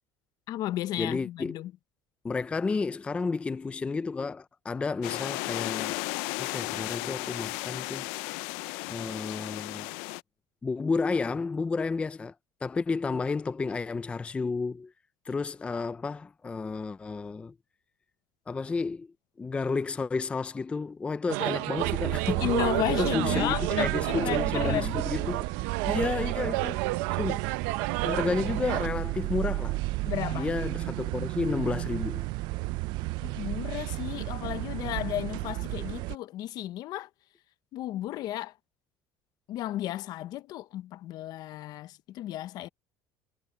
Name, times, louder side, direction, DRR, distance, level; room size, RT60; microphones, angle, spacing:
voice 1, 0.5-1.7 22.4-25.0 30.0-30.5 33.2-37.1 37.7-38.5 39.5-42.7, left 14 dB, 55° left, 0.8 m, -33 dB
voice 2, 1.0-1.6 2.2-6.0 6.4-8.1 8.9-9.9 10.6-12.3 12.6-14.9 15.3-17.5 18.5-19.1 19.4-22.5 23.0-25.5 25.8-26.8 27.2-27.4 28.0-29.8 30.3-32.3, left 4 dB, 15° left, 0.4 m, -31 dB
sound 1, 5.0-10.2, left 24 dB, 85° left, 0.4 m, -34 dB
sound 2, 21.3-28.9, right 20 dB, 90° right, 1.0 m, -31 dB
sound 3, 21.8-36.1, right 21 dB, 65° right, 0.5 m, -33 dB
cardioid pair, 145°, 8 cm